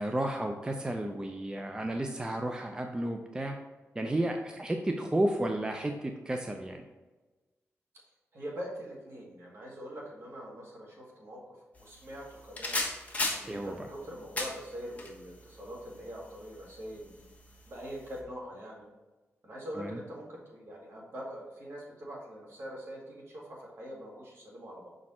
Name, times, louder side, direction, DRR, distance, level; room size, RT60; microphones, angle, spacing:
voice 1, 0.0-3.6 4.0-6.8 13.5-13.7 19.8-20.0, right 1 dB, 15° right, 3 dB, 0.5 m, -32 dB
voice 2, 8.3-12.8 13.3-17.3 17.7-18.9 19.4-24.9, equal, 55° right, -3 dB, 2.0 m, -43 dB
sound 1, 11.8-18.2, left 2 dB, 30° left, 1.3 m, -39 dB
5.9 x 4.3 x 4.3 m, 1.2 s
wide cardioid pair, 115°, 5 cm